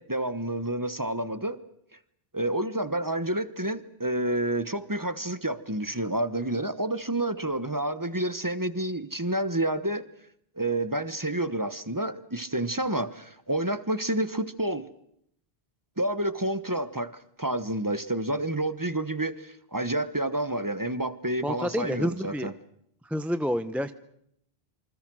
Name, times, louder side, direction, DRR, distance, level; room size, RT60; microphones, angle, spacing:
voice 1, 0.0-1.6 2.3-10.0 10.6-14.9 16.0-17.1 17.4-22.5, right 1 dB, 20° right, 13 dB, 1.1 m, -29 dB
voice 2, 21.4-22.5 23.0-23.9, equal, ahead, 11 dB, 0.7 m, -28 dB
27.5 x 25.0 x 6.3 m, 0.72 s
omnidirectional pair, 1.1 m